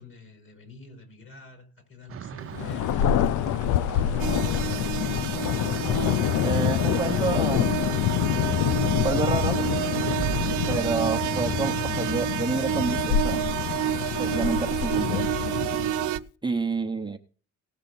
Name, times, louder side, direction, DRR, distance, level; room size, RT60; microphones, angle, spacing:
voice 1, 0.0-5.2, left 2 dB, 45° left, 5.2 m, -48 dB
sound 1, 2.1-14.2, right 9 dB, 45° right, 0.7 m, -39 dB
Thunder, 2.5-16.2, left 11 dB, 80° left, 0.6 m, -26 dB
sound 2, 4.2-16.2, right 14 dB, 80° right, 0.8 m, -30 dB
voice 2, 6.4-7.8 9.0-9.6 10.7-13.5 14.2-15.2 16.4-17.2, right 4 dB, 15° right, 0.9 m, -29 dB
18.5 x 6.6 x 4.1 m
cardioid pair, 90°, 30 cm